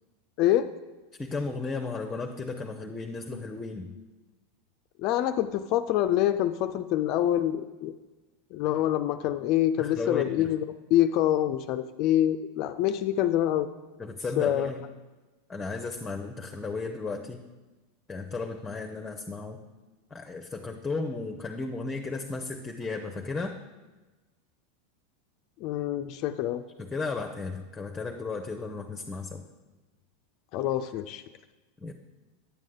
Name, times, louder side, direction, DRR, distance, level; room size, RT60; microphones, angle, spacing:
voice 1, 0.4-0.7 5.0-7.9 8.5-10.6 10.9-13.7 14.4-14.7 25.6-26.6 30.5-31.2, left 12 dB, 45° left, 9 dB, 0.4 m, -26 dB
voice 2, 1.2-4.0 9.8-10.5 14.0-14.9 15.5-17.4 18.1-19.6 20.1-23.6 26.8-29.4 31.8-31.9, left 3 dB, 15° left, 5 dB, 0.7 m, -34 dB
10.0 x 7.5 x 3.8 m, 1.2 s
figure-of-eight pair, 85°, 0 cm